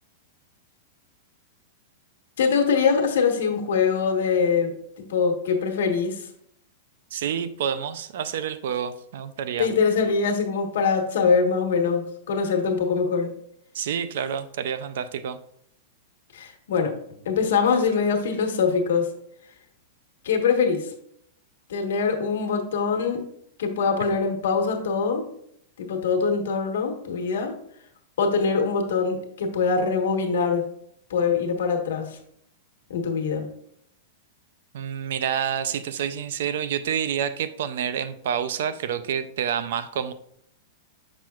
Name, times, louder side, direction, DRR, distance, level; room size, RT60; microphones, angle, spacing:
voice 1, 2.4-4.7 5.1-6.3 9.6-13.3 16.3-16.9 17.2-19.1 20.2-20.9 21.7-23.2 23.6-25.3 25.8-27.5 28.2-30.7 31.1-32.2 32.9-33.5, left 5 dB, 70° left, 3 dB, 1.2 m, -23 dB
voice 2, 7.1-9.7 13.7-15.4 34.7-40.1, right 8 dB, 55° right, 12 dB, 0.4 m, -28 dB
7.4 x 6.0 x 2.3 m, 0.70 s
supercardioid pair, 180°, 0 cm